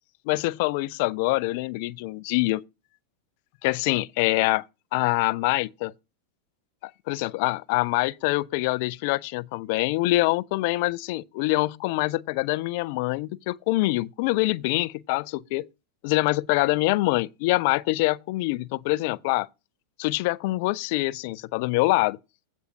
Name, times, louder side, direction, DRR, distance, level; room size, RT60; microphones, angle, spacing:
voice 1, 0.3-2.6 3.6-4.6 4.9-5.9 6.8-15.7 16.0-19.5 20.0-22.2, left 20 dB, 45° left, 0.4 m, -25 dB
15.5 x 6.2 x 2.7 m
figure-of-eight pair, 90°, 0 cm